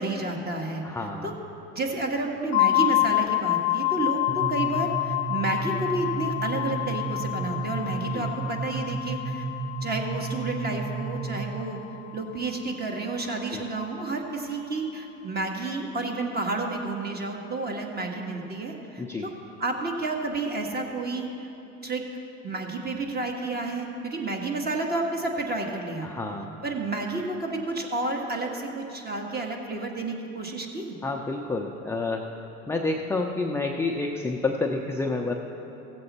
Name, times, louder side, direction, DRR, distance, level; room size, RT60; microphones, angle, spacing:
voice 1, 0.0-0.8 1.2-1.3 1.7-9.4 9.8-11.8 12.1-19.3 19.6-21.3 21.8-22.0 22.4-26.1 26.6-31.0, right 3 dB, 25° right, 1 dB, 1.5 m, -30 dB
voice 2, 0.8-1.3 8.1-8.3 13.5-13.6 19.0-19.3 26.0-26.5 31.0-32.3 32.7-35.3, left 3 dB, 5° left, 1 dB, 0.5 m, -29 dB
sound 1, 2.5-12.2, left 17 dB, 75° left, 0.5 m, -28 dB
sound 2, 4.3-11.8, right 4 dB, 65° right, 0.9 m, -33 dB
16.0 x 7.7 x 4.2 m, 3.0 s
supercardioid pair, 100°, 37 cm